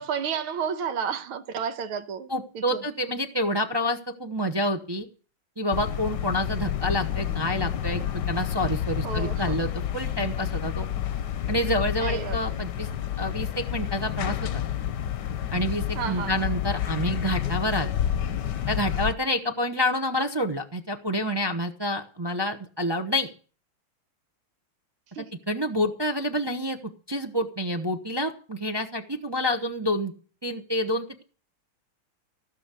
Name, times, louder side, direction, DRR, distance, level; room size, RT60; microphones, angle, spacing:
voice 1, 0.0-2.3 2.5-2.8 9.0-9.7 12.0-12.4 16.0-16.5 25.2-25.3, right 7 dB, 85° right, 2.0 m, -31 dB
voice 2, 2.3-5.1 5.6-10.9 11.5-12.9 13.2-14.4 15.5-17.9 18.7-23.3 25.5-26.8 27.1-30.1 30.4-31.2, equal, 35° right, 0.4 m, -28 dB
sound 1, 5.7-19.1, left 10 dB, 65° left, 1.2 m, -29 dB
16.0 x 6.5 x 8.3 m
omnidirectional pair, 2.3 m